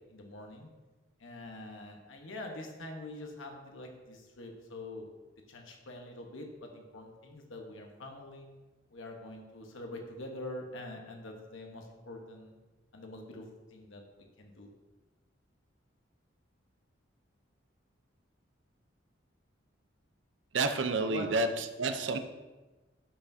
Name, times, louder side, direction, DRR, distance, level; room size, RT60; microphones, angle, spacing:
voice 1, 0.1-0.7 1.2-5.1 5.5-8.5 8.9-12.6 12.9-14.7 21.1-21.3, left 1 dB, 80° left, 2 dB, 1.1 m, -45 dB
voice 2, 20.5-22.2, right 3 dB, 70° right, 8 dB, 0.6 m, -30 dB
11.5 x 5.8 x 2.7 m, 1.2 s
head